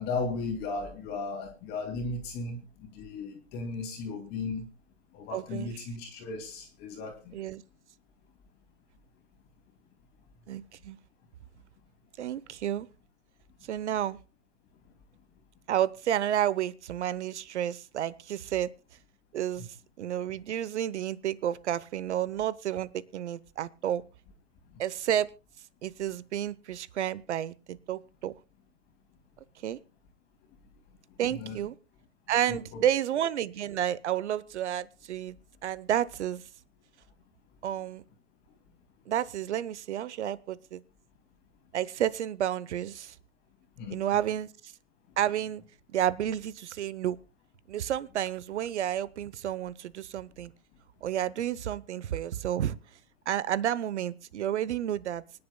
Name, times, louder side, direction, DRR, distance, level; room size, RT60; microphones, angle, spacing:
voice 1, 0.0-4.6 5.1-7.3 31.3-31.6 32.5-32.8 43.8-44.0, left 3 dB, 25° left, 3 dB, 2.5 m, -36 dB
voice 2, 5.3-5.8 7.3-7.6 10.5-11.0 12.2-12.9 13.7-14.2 15.7-18.7 19.3-24.0 24.8-25.3 25.8-28.3 29.6-29.8 31.2-31.7 32.3-35.4 35.6-36.4 37.6-38.0 39.1-40.8 41.7-43.1 43.9-44.7 45.2-45.6 45.9-47.2 47.7-50.5 51.0-52.8 53.3-55.2, right 11 dB, 60° right, 18 dB, 1.0 m, -31 dB
25.5 x 10.5 x 2.3 m, 0.32 s
hypercardioid pair, 140°, 39 cm